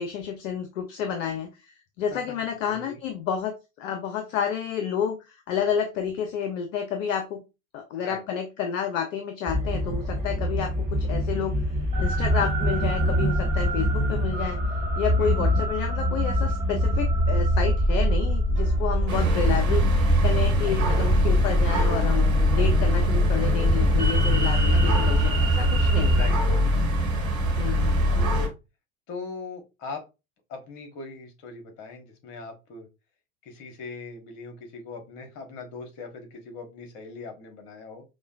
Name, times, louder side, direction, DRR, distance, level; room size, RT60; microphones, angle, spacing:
voice 1, 0.0-1.7 2.0-7.4 7.7-11.6 12.0-14.6 15.0-19.9 20.2-26.2 27.6-28.2, left 8 dB, 65° left, 6 dB, 0.6 m, -30 dB
voice 2, 2.1-3.0 8.0-8.2 15.2-15.4 24.6-24.8 26.1-26.9 28.1-28.5 29.1-30.0 30.5-32.9 33.4-38.0, left 4 dB, 45° left, 5 dB, 1.2 m, -40 dB
sound 1, 9.5-26.3, equal, 15° right, 1.4 m, -25 dB
sound 2, 19.1-28.5, equal, 75° right, 1.3 m, -22 dB
5.0 x 2.2 x 2.2 m, 0.26 s
figure-of-eight pair, 75°, 42 cm